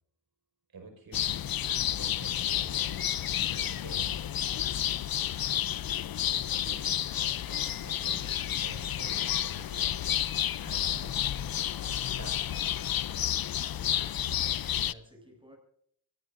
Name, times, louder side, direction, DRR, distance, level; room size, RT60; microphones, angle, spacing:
voice 1, 0.7-1.5 1.9-3.1 3.6-4.2 6.2-10.0 10.6-11.2 12.2-12.6 13.7-13.8 15.2-15.3, right 3 dB, 80° right, 5.3 m, -48 dB
sound 1, 1.1-14.9, left 11 dB, 80° left, 0.6 m, -30 dB
voice 2, 13.6-15.6, equal, 15° right, 7.7 m, -55 dB
25.5 x 19.0 x 2.6 m
wide cardioid pair, 80°, 35 cm